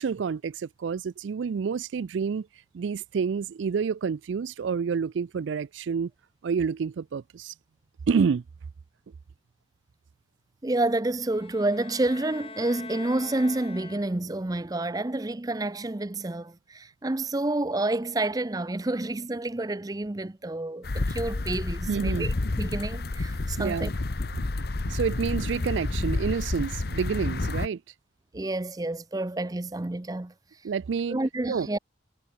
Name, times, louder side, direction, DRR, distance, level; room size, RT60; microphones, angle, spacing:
voice 1, 0.0-2.5 2.7-6.1 6.4-7.5 8.1-8.4 21.9-22.3 23.6-23.9 24.6-27.8 30.6-31.7, right 6 dB, 80° right, 0.4 m, -28 dB
voice 2, 10.6-23.9 28.3-30.3 31.1-31.8, right 2 dB, 20° right, 0.5 m, -29 dB
sound 1, 11.2-14.4, left 4 dB, 30° left, 4.1 m, -44 dB
sound 2, 20.8-27.7, left 2 dB, 55° left, 0.8 m, -30 dB
head